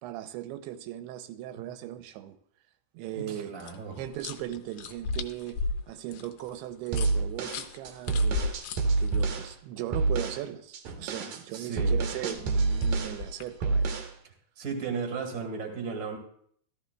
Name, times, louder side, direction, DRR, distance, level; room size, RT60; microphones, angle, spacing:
voice 1, 0.0-2.4 2.9-3.5 4.0-8.6 9.0-14.0, right 12 dB, 85° right, 2.6 m, -38 dB
voice 2, 3.2-4.0 11.5-11.9 14.6-16.2, right 5 dB, 35° right, 1.4 m, -35 dB
sound 1, 3.6-9.5 12.1-13.6, left 4 dB, 85° left, 1.9 m, -37 dB
sound 2, 6.9-9.5 9.9-10.4 10.7-13.2 13.6-14.1, right 3 dB, 70° right, 1.7 m, -27 dB
14.0 x 14.0 x 2.3 m
omnidirectional pair, 4.5 m